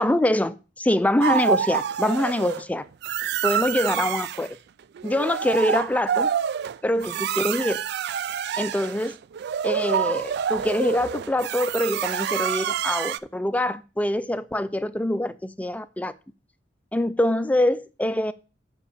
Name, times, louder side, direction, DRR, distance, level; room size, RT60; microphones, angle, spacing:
voice 1, 0.0-2.8 3.4-4.6 5.0-6.3 6.8-7.8 8.6-9.2 9.6-16.1 16.9-18.3, left 1 dB, 10° left, 0.4 m, -24 dB
sound 1, 1.2-2.6 3.0-4.5 5.0-13.2, right 8 dB, 60° right, 0.3 m, -27 dB
6.7 x 4.8 x 6.9 m
head